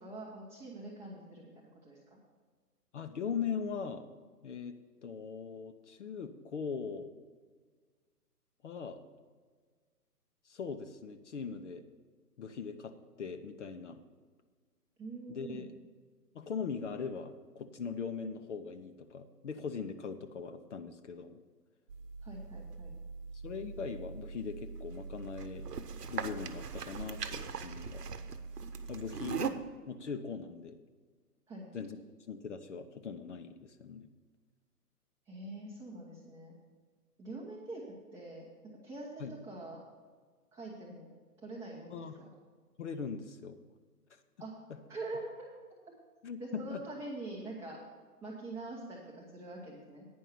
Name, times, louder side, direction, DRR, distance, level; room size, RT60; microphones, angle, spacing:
voice 1, 0.0-2.2 15.0-15.7 22.2-22.9 31.5-31.7 35.3-36.5 37.2-37.8 38.1-39.8 40.5-41.1 41.4-42.3 44.4-44.5 44.9-45.5 46.4-47.8 48.2-50.1, right 2 dB, 5° right, -5 dB, 0.7 m, -44 dB
voice 2, 2.9-4.0 4.4-4.8 5.0-7.1 8.6-9.0 10.5-11.8 12.4-14.0 15.3-15.7 16.3-21.4 23.3-25.7 26.1-28.0 28.9-30.8 31.7-32.0 32.3-34.1 39.2-39.4 41.9-42.2 42.8-43.6 46.2-46.8, left 6 dB, 50° left, 8 dB, 0.7 m, -40 dB
sound 1, 21.9-29.5, right 6 dB, 75° right, 1.0 m, -41 dB
9.5 x 5.4 x 8.1 m, 1.5 s
figure-of-eight pair, 140°, 48 cm